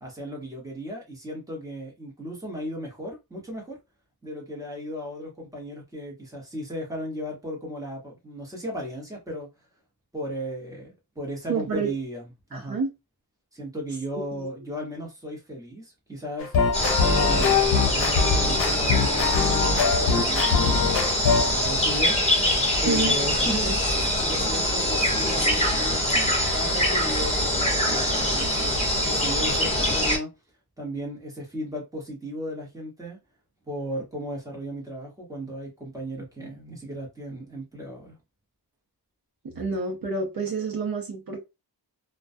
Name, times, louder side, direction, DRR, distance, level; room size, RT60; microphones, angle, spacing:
voice 1, 0.0-3.8 4.2-9.5 10.1-12.8 13.5-16.5 17.1-21.1 21.4-22.4 22.8-30.3 30.8-33.2 33.7-38.2, equal, 10° right, 0.9 m, -35 dB
voice 2, 11.5-11.9 12.5-12.9 22.9-23.1 39.5-41.4, right 5 dB, 60° right, 0.7 m, -28 dB
sound 1, 16.4-21.5, left 5 dB, 65° left, 0.7 m, -23 dB
sound 2, 16.7-30.2, left 1 dB, 15° left, 1.0 m, -24 dB
2.2 x 2.2 x 2.6 m
wide cardioid pair, 130°, 40 cm